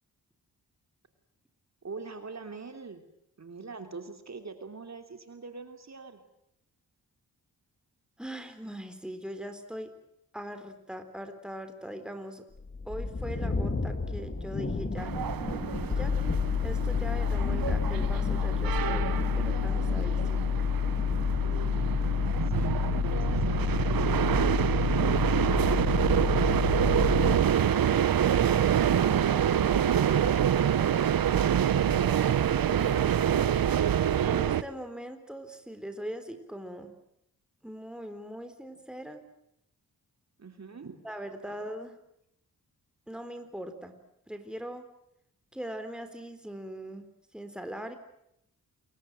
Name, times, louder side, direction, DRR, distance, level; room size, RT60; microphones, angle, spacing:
voice 1, 1.8-3.1 3.4-6.2 21.4-24.9 40.4-41.0, right 4 dB, 50° right, 6 dB, 3.1 m, -44 dB
voice 2, 8.2-9.9 10.3-12.4 12.9-15.2 15.9-16.2 16.6-20.5 34.2-36.9 37.6-39.2 41.0-42.0 43.1-44.0 44.3-44.9 45.5-47.1 47.3-48.0, right 1 dB, ahead, 8 dB, 4.1 m, -40 dB
sound 1, 12.5-30.6, left 3 dB, 30° left, 3.2 m, -37 dB
sound 2, 15.0-34.6, right 9 dB, 70° right, 1.1 m, -26 dB
sound 3, 15.9-27.4, left 8 dB, 80° left, 1.8 m, -29 dB
28.5 x 23.0 x 7.7 m, 0.76 s
cardioid pair, 75°, 36 cm